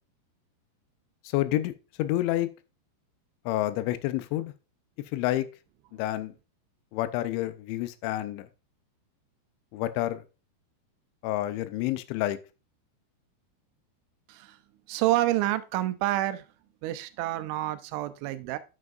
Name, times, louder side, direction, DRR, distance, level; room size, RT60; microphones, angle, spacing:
voice 1, 1.2-1.7 2.0-2.5 3.5-4.5 5.1-5.5 5.9-6.3 6.9-8.5 9.7-10.2 11.2-12.4, left 15 dB, 85° left, 3.0 m, -28 dB
voice 2, 14.9-16.4 16.8-18.6, right 15 dB, 90° right, 3.0 m, -28 dB
9.5 x 7.7 x 2.4 m
omnidirectional pair, 5.3 m